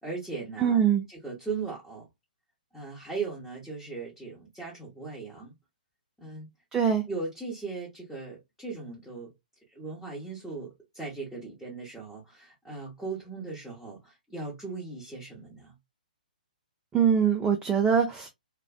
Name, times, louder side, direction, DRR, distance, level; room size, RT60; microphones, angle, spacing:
voice 1, 0.0-0.8 1.1-2.1 2.7-5.5 6.2-6.5 7.1-9.3 9.7-15.7, right 4 dB, 5° left, 1.0 m, -38 dB
voice 2, 0.6-1.0 6.7-7.0 16.9-18.3, right 7 dB, 10° right, 0.4 m, -23 dB
2.4 x 2.2 x 2.3 m
figure-of-eight pair, 130°, 5 cm